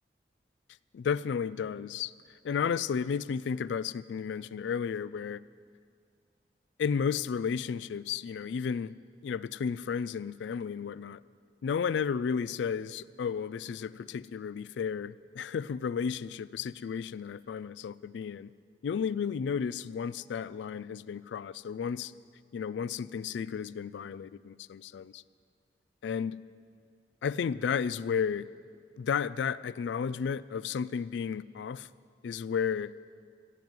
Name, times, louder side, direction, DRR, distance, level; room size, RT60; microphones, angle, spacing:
voice 1, 0.9-5.4 6.8-9.0 9.2-11.2 11.6-18.5 18.8-22.1 22.5-25.2 26.0-26.4 27.2-28.5 29.0-31.9 32.2-32.9, left 6 dB, 85° left, 0.3 m, -33 dB
15.0 x 9.2 x 9.4 m
head